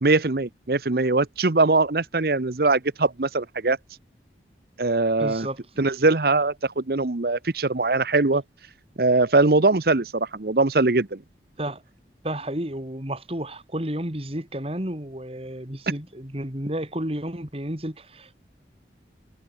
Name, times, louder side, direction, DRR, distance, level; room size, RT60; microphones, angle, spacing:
voice 1, 0.0-3.8 4.8-5.5 5.8-8.4 9.0-11.2 15.9-16.0, right 3 dB, 55° right, 0.9 m, -21 dB
voice 2, 5.2-5.6 11.6-11.8 12.2-18.3, right 1 dB, 35° right, 3.4 m, -31 dB
head